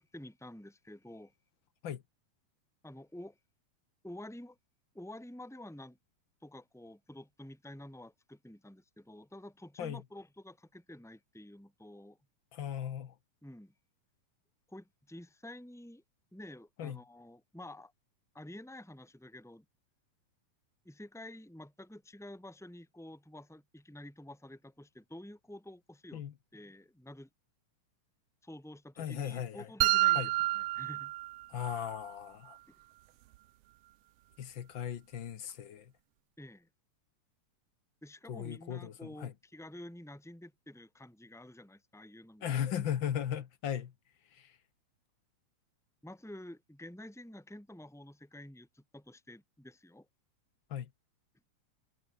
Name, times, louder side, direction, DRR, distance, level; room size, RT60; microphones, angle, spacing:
voice 1, 0.0-1.3 2.8-3.4 4.0-4.6 4.9-6.0 6.4-12.2 13.4-13.7 14.7-16.0 16.3-17.9 18.3-19.6 20.8-26.2 26.5-27.3 28.4-31.1 36.4-36.7 38.0-42.5 42.9-43.0 46.0-50.1, left 1 dB, ahead, 5.5 m, -49 dB
voice 2, 12.5-13.1 16.8-17.0 26.1-26.3 29.0-29.7 30.1-30.3 31.5-32.6 34.4-35.9 38.3-39.3 42.4-43.9 44.3-44.5 50.7-50.9, left 9 dB, 55° left, 1.5 m, -37 dB
sound 1, 29.8-31.8, right 17 dB, 85° right, 1.3 m, -29 dB
omnidirectional pair, 3.4 m